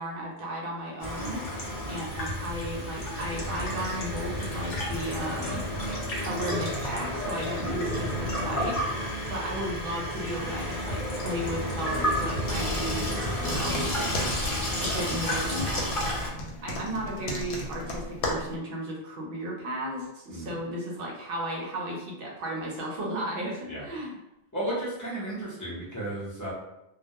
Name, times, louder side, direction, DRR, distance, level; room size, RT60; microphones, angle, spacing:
voice 1, 0.0-1.4 1.9-5.6 6.2-14.5 14.8-15.9 16.6-24.2, right 1 dB, 65° right, -2 dB, 0.7 m, -34 dB
Water tap faucet / Sink (filling or washing), 1.0-16.3, left 1 dB, 50° left, 0.8 m, -31 dB
voice 2, 7.6-7.9 14.8-15.0 20.3-20.5 23.7-23.9 24.5-26.5, right 1 dB, 20° left, -7 dB, 0.6 m, -34 dB
sound 1, 13.3-18.6, left 1 dB, 80° left, 0.8 m, -35 dB
2.1 x 2.1 x 2.7 m, 0.88 s
omnidirectional pair, 1.1 m